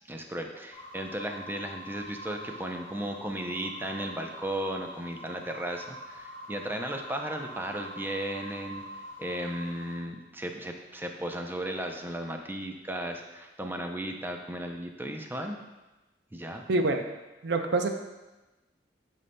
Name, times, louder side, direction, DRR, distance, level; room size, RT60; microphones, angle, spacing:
voice 1, 0.1-8.8 9.2-15.6 16.3-16.7, right 1 dB, 10° right, 4 dB, 0.5 m, -35 dB
sound 1, 0.7-10.0, equal, 25° left, 2.0 m, -45 dB
voice 2, 16.7-17.0 17.4-17.9, right 2 dB, 65° right, 6 dB, 0.6 m, -25 dB
7.9 x 5.5 x 2.2 m, 1.1 s
head